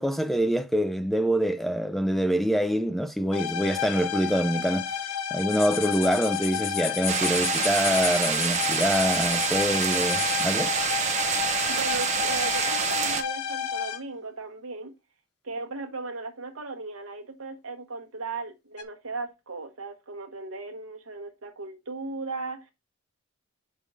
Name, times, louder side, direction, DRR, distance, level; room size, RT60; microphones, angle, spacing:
voice 1, 0.0-4.9 5.3-10.7, equal, ahead, 0.4 m, -25 dB
sound 1, 3.3-14.0 18.8-18.9, left 9 dB, 85° left, 0.8 m, -31 dB
sound 2, 5.4-10.6, left 8 dB, 60° left, 0.9 m, -35 dB
sound 3, 7.1-13.2, right 7 dB, 30° right, 0.7 m, -27 dB
voice 2, 11.7-14.9 15.4-22.7, right 3 dB, 70° right, 1.1 m, -37 dB
5.4 x 4.2 x 4.7 m
head